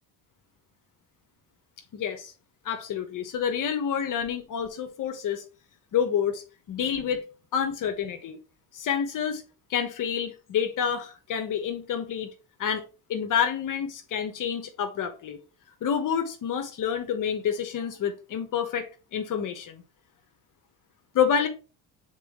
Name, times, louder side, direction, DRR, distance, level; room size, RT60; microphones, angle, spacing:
voice 1, 1.9-2.3 2.6-5.4 5.9-7.2 7.5-8.4 8.7-9.4 9.7-12.3 12.6-12.8 13.1-15.4 15.8-19.8 21.1-21.5, left 8 dB, 50° left, 1.2 m, -28 dB
7.2 x 4.0 x 3.7 m
cardioid pair, 110°, 40 cm